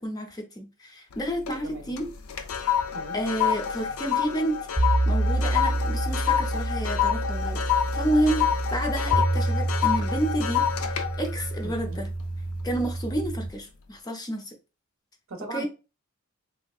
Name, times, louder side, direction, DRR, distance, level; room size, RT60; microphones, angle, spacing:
voice 1, 0.0-2.1 3.1-4.6 5.1-7.6 7.9-12.1 12.6-14.5 15.5-15.7, right 1 dB, 20° left, 0.5 m, -30 dB
sound 1, 1.1-1.6 2.0-12.5 13.0-13.3, left 9 dB, 85° left, 0.4 m, -28 dB
voice 2, 1.6-1.9 2.9-3.2 11.6-12.0 15.3-15.7, right 2 dB, 65° right, 0.6 m, -39 dB
sound 2, 4.8-13.5, right 2 dB, 25° right, 0.8 m, -28 dB
3.2 x 2.6 x 2.3 m
head